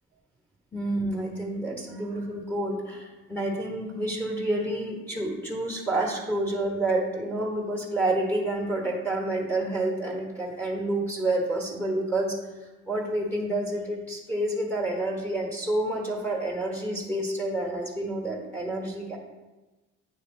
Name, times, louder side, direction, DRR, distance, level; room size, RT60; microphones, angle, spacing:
voice 1, 0.7-19.2, right 1 dB, 5° left, -2 dB, 1.3 m, -29 dB
9.5 x 3.2 x 3.8 m, 1.1 s
cardioid pair, 90°, 30 cm